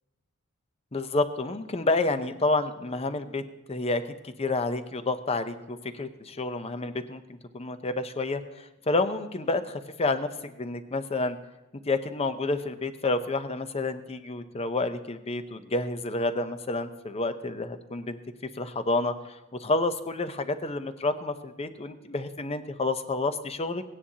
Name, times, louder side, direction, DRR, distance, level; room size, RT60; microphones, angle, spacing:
voice 1, 0.9-3.4 3.7-7.2 7.5-11.4 11.9-18.2 18.6-23.8, left 2 dB, 30° left, 10 dB, 0.6 m, -29 dB
17.5 x 9.9 x 2.8 m, 1.1 s
head